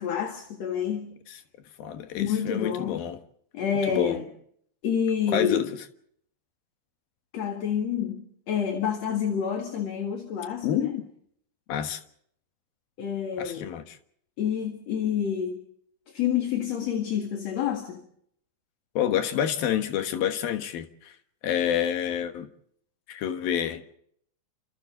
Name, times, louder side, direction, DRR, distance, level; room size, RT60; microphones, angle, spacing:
voice 1, 0.0-1.1 2.1-3.0 3.5-4.2 4.8-5.7 7.3-11.0 13.0-13.7 14.4-15.6 16.1-18.0, left 8 dB, 50° left, 2.7 m, -28 dB
voice 2, 1.8-3.2 3.9-4.2 5.3-5.7 10.6-11.0 11.7-12.0 13.4-14.0 19.0-21.1 21.4-22.5 23.1-23.8, left 10 dB, 70° left, 3.1 m, -28 dB
29.5 x 26.5 x 3.9 m
omnidirectional pair, 4.5 m